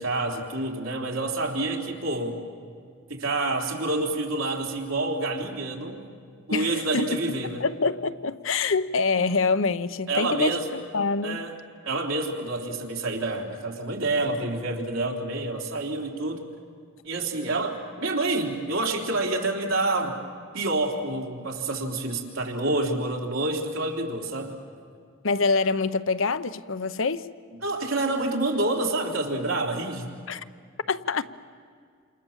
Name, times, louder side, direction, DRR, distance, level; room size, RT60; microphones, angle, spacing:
voice 1, 0.0-2.4 3.1-6.1 6.5-7.7 10.1-10.7 11.2-11.5 11.9-16.4 17.0-20.2 20.5-24.6 27.6-30.1, right 2 dB, 85° right, 3.6 m, -28 dB
voice 2, 6.5-11.4 25.2-27.3 30.3-30.4 30.9-31.2, left 4 dB, 75° left, 0.8 m, -26 dB
28.5 x 27.5 x 7.4 m
head